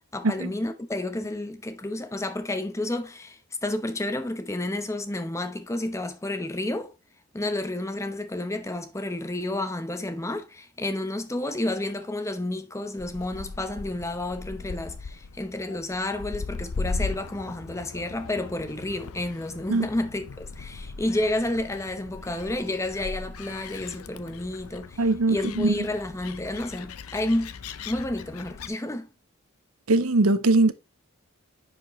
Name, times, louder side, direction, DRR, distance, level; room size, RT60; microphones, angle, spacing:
voice 1, 0.1-6.9 7.3-27.5 27.9-29.1, left 1 dB, 15° left, 0.8 m, -30 dB
Gull seagull, 13.0-28.7, left 4 dB, 85° left, 0.6 m, -38 dB
voice 2, 25.0-25.8 29.9-30.7, right 2 dB, 85° right, 0.8 m, -21 dB
10.5 x 5.1 x 3.1 m
head